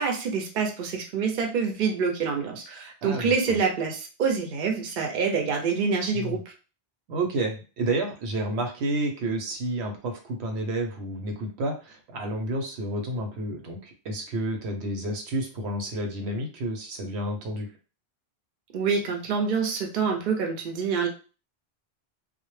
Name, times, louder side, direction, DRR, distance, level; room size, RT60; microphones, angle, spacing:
voice 1, 0.0-6.4 18.7-21.1, right 5 dB, 60° right, 2 dB, 0.7 m, -26 dB
voice 2, 3.0-3.6 6.1-6.4 7.1-17.7, right 1 dB, 85° right, 3 dB, 0.9 m, -30 dB
2.1 x 2.1 x 3.0 m, 0.34 s
omnidirectional pair, 1.1 m